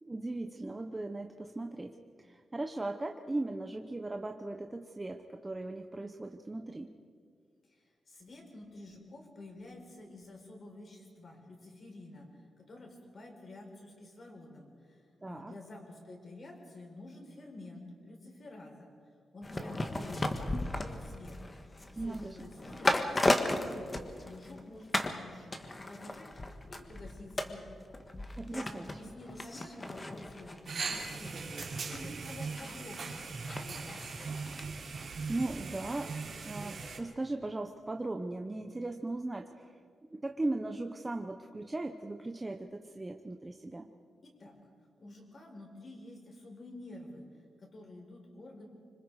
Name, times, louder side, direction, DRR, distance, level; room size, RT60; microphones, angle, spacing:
voice 1, 0.0-6.9 15.2-15.5 22.0-22.4 28.4-29.0 35.3-36.1 36.4-39.7 40.1-43.9, right 2 dB, 15° right, 4 dB, 0.8 m, -38 dB
voice 2, 7.7-12.3 12.6-18.9 19.3-21.4 21.9-26.3 26.7-27.7 28.5-31.5 31.9-34.2 44.2-44.5 45.0-47.3 47.6-48.7, left 2 dB, 40° left, 1 dB, 4.7 m, -50 dB
sound 1, 19.4-24.6 24.9-25.2 25.5-34.7 35.0-35.1, left 2 dB, 20° left, 1.4 m, -35 dB
sound 2, 30.7-37.0, right 4 dB, 50° right, 3.1 m, -40 dB
25.5 x 25.5 x 4.8 m, 2.1 s
wide cardioid pair, 150°, 0 cm